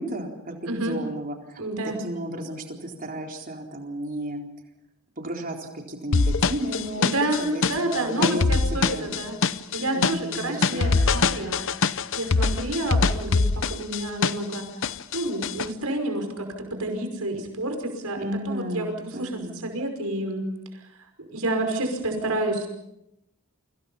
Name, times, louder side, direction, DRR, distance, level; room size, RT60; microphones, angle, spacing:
voice 1, 0.0-4.4 5.2-7.1 7.5-9.3 9.9-11.5 18.2-19.7, equal, 40° right, 2 dB, 4.0 m, -33 dB
voice 2, 0.6-1.0 1.6-2.0 7.0-9.4 9.7-11.7 12.2-14.6 15.1-20.5 21.2-22.7, right 2 dB, 85° right, 5 dB, 5.4 m, -29 dB
sound 1, 6.1-14.6 14.8-15.7, left 4 dB, 60° left, 0.9 m, -23 dB
30.0 x 25.0 x 5.6 m, 0.83 s
head